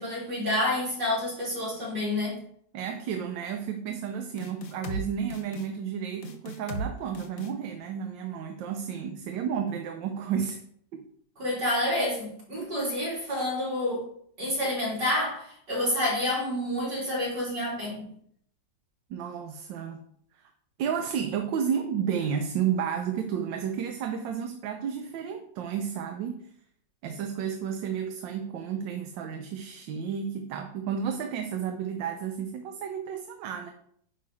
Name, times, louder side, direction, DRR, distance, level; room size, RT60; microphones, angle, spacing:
voice 1, 0.0-2.4 11.4-14.0 14.4-18.0, left 1 dB, 70° right, -6 dB, 3.7 m, -28 dB
voice 2, 2.7-10.6 10.9-11.0 12.6-12.7 19.1-20.0 20.8-26.4 27.0-33.7, right 7 dB, 85° right, 6 dB, 1.4 m, -32 dB
sound 1, 4.4-5.0 5.3-5.7 6.2-6.9 7.1-7.5, equal, 60° left, 1.1 m, -35 dB
9.5 x 3.2 x 5.3 m, 0.65 s
omnidirectional pair, 2.0 m